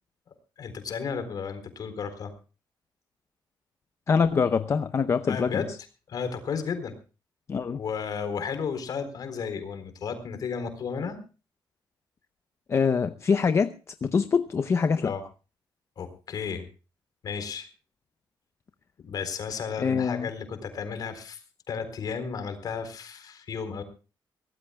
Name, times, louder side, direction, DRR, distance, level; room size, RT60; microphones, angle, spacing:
voice 1, 0.6-2.3 5.3-5.7 6.1-6.9 7.7-11.2 15.0-15.2 16.0-16.7 17.2-17.7 19.0-21.4 21.7-23.8, left 6 dB, 50° left, 4.0 m, -33 dB
voice 2, 4.1-5.6 7.5-7.8 12.7-13.7 14.0-15.1 19.8-20.3, left 5 dB, 35° left, 0.6 m, -24 dB
23.5 x 18.0 x 2.2 m
wide cardioid pair, 180°, 8 cm